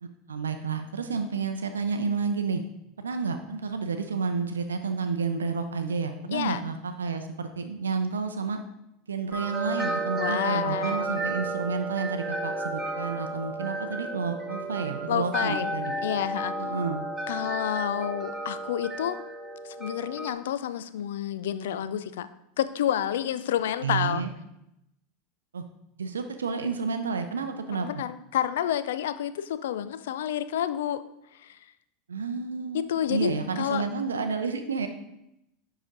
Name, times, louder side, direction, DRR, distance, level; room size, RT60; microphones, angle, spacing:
voice 1, 0.0-2.6 3.0-8.6 9.1-16.0 16.6-17.1 23.8-24.3 25.5-25.6 26.0-28.0 32.1-34.9, right 5 dB, 90° right, 7 dB, 0.5 m, -30 dB
voice 2, 6.3-6.6 10.2-11.1 15.1-15.7 16.0-16.5 17.3-19.2 19.6-22.3 22.6-24.2 27.7-31.0 31.4-31.6 32.7-33.8, left 10 dB, 75° left, 14 dB, 0.4 m, -29 dB
sound 1, 9.3-20.3, right 2 dB, 5° right, 1.9 m, -33 dB
5.1 x 4.9 x 5.1 m, 0.83 s
hypercardioid pair, 85°, 0 cm